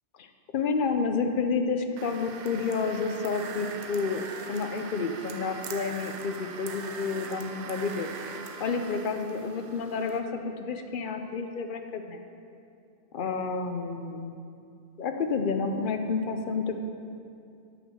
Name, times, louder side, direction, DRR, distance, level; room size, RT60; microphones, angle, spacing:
voice 1, 0.5-4.2 4.5-8.3 8.6-12.2 13.1-14.4 15.0-16.8, left 4 dB, 55° left, 6 dB, 0.7 m, -30 dB
sound 1, 2.0-10.2, right 5 dB, 90° right, 1.0 m, -41 dB
7.9 x 6.2 x 6.3 m, 2.5 s
omnidirectional pair, 1.1 m